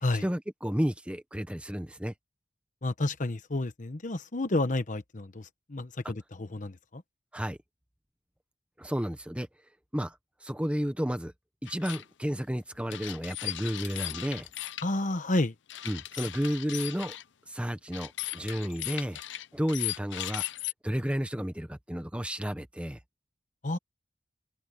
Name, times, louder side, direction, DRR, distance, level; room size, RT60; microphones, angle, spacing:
voice 1, 0.2-2.1 7.3-7.6 8.8-9.5 9.9-11.3 11.6-14.5 15.8-17.2 17.5-19.2 19.5-20.4 20.8-23.0, equal, 5° right, 1.1 m, -32 dB
voice 2, 2.8-7.0 14.8-15.5 23.6-23.8, left 2 dB, 45° left, 1.0 m, -30 dB
sound 1, 11.7-12.0 12.9-14.9 15.7-17.2 17.9-20.7, left 14 dB, 80° left, 0.6 m, -37 dB
open air
head